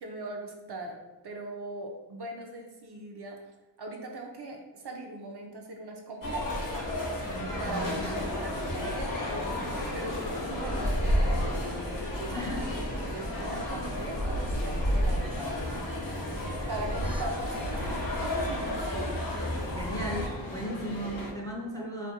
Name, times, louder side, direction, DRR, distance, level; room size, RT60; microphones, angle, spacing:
voice 1, 0.0-1.0 1.2-3.4 3.8-6.5 7.6-12.5 13.1-15.6 16.7-19.2, right 2 dB, 60° right, 1 dB, 0.5 m, -40 dB
sound 1, 6.2-20.3, left 1 dB, 50° left, 0.6 m, -32 dB
voice 2, 7.2-8.2 12.3-12.7 19.8-22.1, equal, 10° left, -2 dB, 0.4 m, -36 dB
sound 2, 7.6-21.3, left 1 dB, 85° left, 0.7 m, -38 dB
2.4 x 2.1 x 2.7 m, 1.1 s
wide cardioid pair, 50°, 45 cm